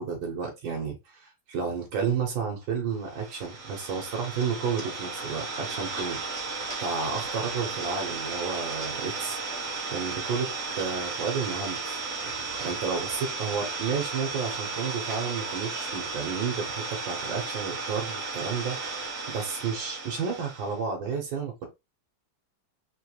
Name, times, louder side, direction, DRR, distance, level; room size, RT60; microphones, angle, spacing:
voice 1, 0.0-6.2 6.8-9.4 9.9-12.0 12.2-21.7, right 6 dB, 90° right, 1.9 m, -32 dB
Idling, 3.0-20.8, right 3 dB, 45° right, 1.7 m, -34 dB
4.6 x 3.0 x 3.2 m
omnidirectional pair, 2.0 m